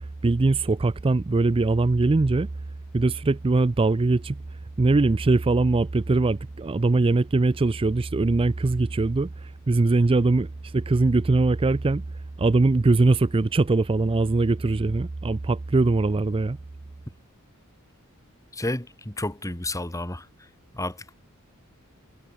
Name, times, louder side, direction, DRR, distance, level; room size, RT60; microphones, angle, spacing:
voice 1, 0.2-2.5 2.9-4.4 4.8-12.0 12.4-16.6, right 3 dB, 25° right, 0.4 m, -21 dB
voice 2, 18.5-20.3 20.7-21.1, left 1 dB, 15° left, 2.6 m, -31 dB
head